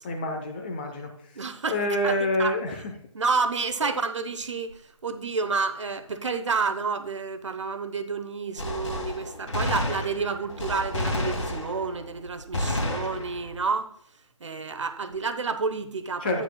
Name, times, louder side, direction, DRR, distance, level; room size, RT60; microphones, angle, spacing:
voice 1, 0.0-1.1 1.7-2.9 3.8-3.9 16.2-16.4, left 1 dB, 15° left, 0.7 m, -27 dB
voice 2, 1.4-1.8 2.0-2.6 3.1-13.9 14.4-16.4, right 4 dB, 60° right, 0.8 m, -30 dB
Gunshot gunfire, 8.6-12.1 12.5-13.6, left 1 dB, 65° left, 2.1 m, -30 dB
9.1 x 9.1 x 2.2 m
figure-of-eight pair, 155°, 18 cm